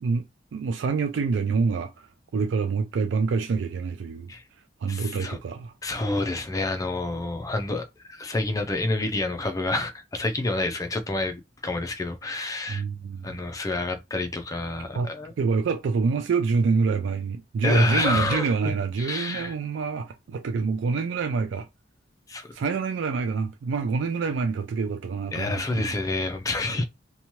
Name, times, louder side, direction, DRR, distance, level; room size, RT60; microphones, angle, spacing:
voice 1, 0.5-2.1 2.3-4.3 4.8-5.7 12.7-13.3 14.9-15.1 15.4-21.7 22.5-25.9, right 5 dB, 80° right, 0.3 m, -26 dB
voice 2, 4.9-5.4 5.8-12.8 13.2-15.3 17.6-18.5 19.0-19.5 22.3-22.5 25.3-26.8, left 2 dB, 20° left, 0.4 m, -28 dB
2.7 x 2.2 x 2.9 m
head